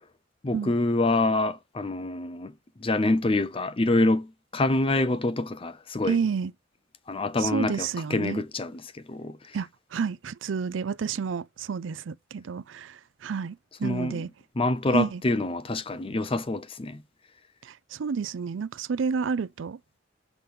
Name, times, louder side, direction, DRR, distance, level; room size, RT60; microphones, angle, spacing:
voice 1, 0.4-2.5 2.8-6.2 7.1-9.6 13.8-14.3 14.6-17.0, left 2 dB, 30° left, 0.6 m, -26 dB
voice 2, 6.1-6.5 7.4-8.4 9.5-14.3 14.9-15.2 17.6-19.8, right 6 dB, 75° right, 0.4 m, -30 dB
6.0 x 5.2 x 5.5 m
head